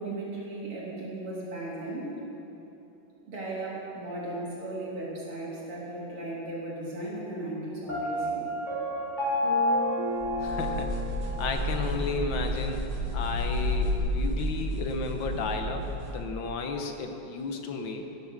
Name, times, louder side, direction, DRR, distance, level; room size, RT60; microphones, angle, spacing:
voice 1, 0.0-2.2 3.3-8.5, right 2 dB, 85° right, -5 dB, 3.6 m, -36 dB
Piano, 7.9-11.7, left 1 dB, 20° left, 3.2 m, -29 dB
sound 1, 10.2-16.2, equal, 35° right, 1.5 m, -31 dB
voice 2, 10.4-10.9 11.4-18.0, left 4 dB, 65° left, 5 dB, 1.6 m, -33 dB
16.0 x 7.3 x 6.6 m, 3.0 s
omnidirectional pair, 2.3 m